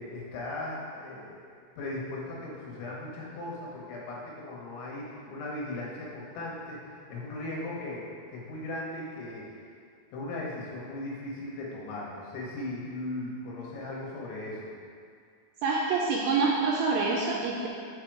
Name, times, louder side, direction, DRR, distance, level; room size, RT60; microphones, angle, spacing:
voice 1, 0.0-9.6 10.1-14.7, left 2 dB, 75° left, -4 dB, 3.2 m, -38 dB
voice 2, 15.6-17.7, right 4 dB, 85° right, -2 dB, 2.6 m, -26 dB
6.8 x 5.1 x 4.6 m, 2.3 s
omnidirectional pair, 5.6 m